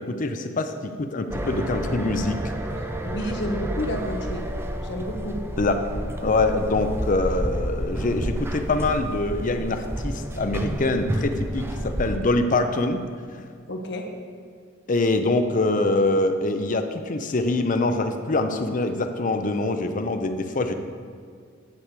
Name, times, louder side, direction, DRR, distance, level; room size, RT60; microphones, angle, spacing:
voice 1, 0.0-2.4 5.6-5.9 6.2-13.1 13.3-13.4 14.9-20.7, left 2 dB, 40° left, 7 dB, 0.6 m, -24 dB
sound 1, 1.3-12.2, right 1 dB, 10° right, 0.4 m, -30 dB
voice 2, 3.0-4.5 4.8-5.4 13.7-14.1, left 1 dB, 55° left, 3 dB, 1.1 m, -30 dB
10.5 x 6.7 x 4.7 m, 2.1 s
head